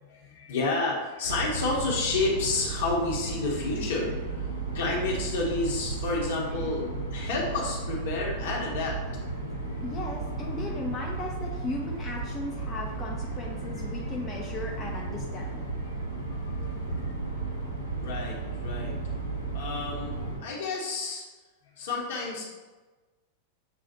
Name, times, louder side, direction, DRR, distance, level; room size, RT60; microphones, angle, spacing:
voice 1, 0.1-4.3 4.7-9.0 13.7-13.8 16.1-17.1 18.0-19.0 19.5-20.1 20.4-21.2 21.8-22.4, left 3 dB, 60° left, -3 dB, 1.1 m, -30 dB
sound 1, 1.2-20.4, right 3 dB, 90° left, 0.8 m, -34 dB
voice 2, 9.8-15.6, left 2 dB, 25° left, -2 dB, 0.6 m, -37 dB
7.0 x 2.4 x 2.8 m, 1.2 s
figure-of-eight pair, 90°, 0 cm